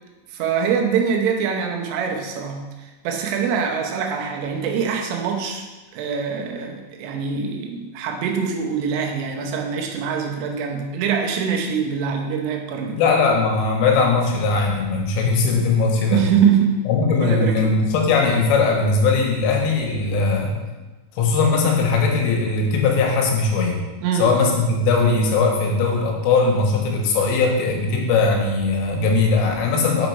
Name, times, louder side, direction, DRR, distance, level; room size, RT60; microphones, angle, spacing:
voice 1, 0.3-5.6 5.9-13.0 16.1-16.8 17.2-17.7 24.0-24.3, right 7 dB, 85° right, 1 dB, 3.4 m, -23 dB
voice 2, 13.0-16.2 16.9-20.5 21.2-23.8 24.2-30.1, left 4 dB, 90° left, 0 dB, 3.7 m, -19 dB
7.3 x 5.2 x 4.6 m, 1.2 s
omnidirectional pair, 5.7 m